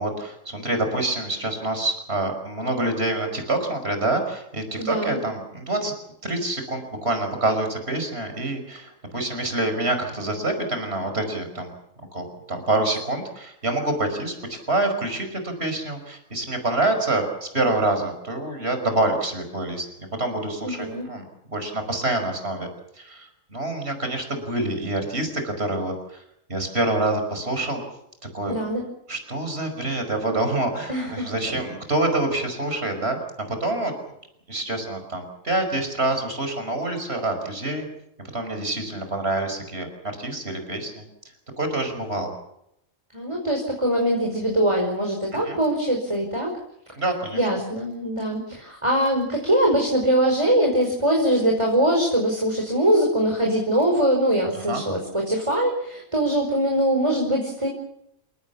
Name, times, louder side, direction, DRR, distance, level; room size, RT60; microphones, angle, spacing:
voice 1, 0.0-5.9 6.2-11.7 12.1-21.2 21.5-22.7 23.0-26.2 26.5-27.8 28.3-28.6 29.1-33.2 33.5-33.9 34.5-37.9 38.3-39.9 40.2-41.1 41.6-42.3 45.5-45.6 47.0-47.4 54.7-54.8, right 2 dB, 45° right, 6 dB, 5.7 m, -26 dB
voice 2, 4.8-5.2 20.6-21.1 28.5-28.8 30.9-31.3 43.1-46.6 47.3-57.7, right 1 dB, 20° right, 1 dB, 5.2 m, -22 dB
29.5 x 18.0 x 7.1 m, 0.77 s
omnidirectional pair, 1.5 m